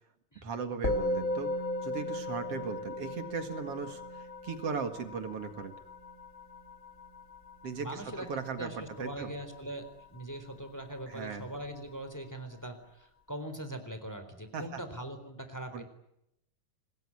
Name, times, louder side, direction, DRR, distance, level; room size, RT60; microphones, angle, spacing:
voice 1, 0.4-1.5 1.8-5.8 7.6-9.3 11.1-11.4 14.5-14.8 15.7-15.8, right 5 dB, 50° right, 8 dB, 2.7 m, -38 dB
Musical instrument, 0.8-10.4, left 1 dB, 25° left, 3.0 m, -37 dB
voice 2, 7.8-15.8, right 1 dB, 5° left, 8 dB, 3.7 m, -42 dB
26.0 x 20.0 x 10.0 m, 0.81 s
omnidirectional pair, 3.8 m